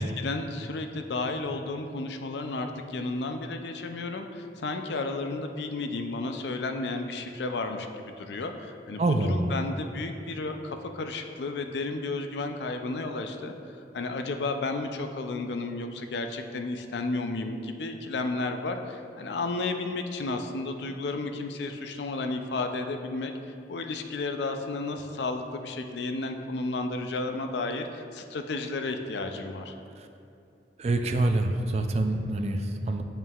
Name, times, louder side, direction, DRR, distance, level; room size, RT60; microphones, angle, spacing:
voice 1, 0.0-9.0 9.3-13.5 13.9-23.3 23.7-29.7, left 3 dB, 80° left, 6 dB, 0.5 m, -32 dB
voice 2, 9.0-9.5 30.0-30.1 30.8-33.0, right 2 dB, 35° right, 6 dB, 0.3 m, -26 dB
9.0 x 5.5 x 2.4 m, 2.5 s
head